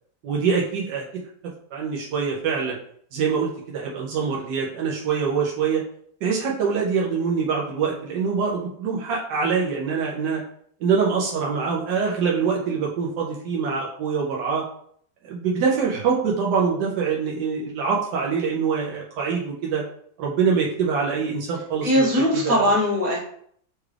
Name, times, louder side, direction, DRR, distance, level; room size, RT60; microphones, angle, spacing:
voice 1, 0.2-1.0 1.7-2.8 3.1-5.8 6.2-10.4 10.8-14.6 15.2-19.8 20.2-22.6, right 5 dB, 90° right, -2 dB, 1.3 m, -24 dB
voice 2, 21.8-23.2, equal, 60° right, -3 dB, 1.8 m, -20 dB
6.0 x 2.4 x 3.2 m, 0.64 s
omnidirectional pair, 1.7 m